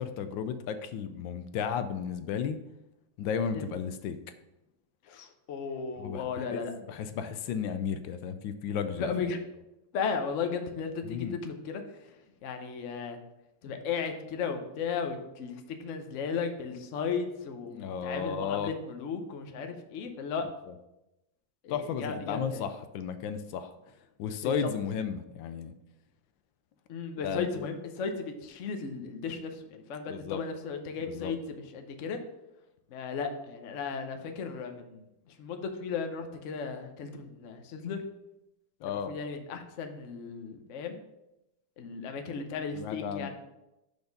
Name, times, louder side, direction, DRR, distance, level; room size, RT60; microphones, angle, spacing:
voice 1, 0.0-2.6 3.2-4.2 6.0-9.1 11.0-11.4 17.7-18.7 20.7-20.8 21.7-23.7 24.2-25.7 27.2-27.7 30.1-30.4 31.0-31.3 38.8-39.1 42.7-43.3, left 7 dB, 75° left, 10 dB, 1.3 m, -34 dB
voice 2, 5.0-6.7 9.0-9.4 9.9-12.1 12.4-13.2 13.6-20.4 21.6-22.6 24.4-24.5 26.9-32.2 32.9-38.0 38.8-41.0 41.8-43.3, left 5 dB, 60° left, 6 dB, 0.8 m, -35 dB
6.2 x 5.3 x 5.1 m, 0.93 s
omnidirectional pair, 2.2 m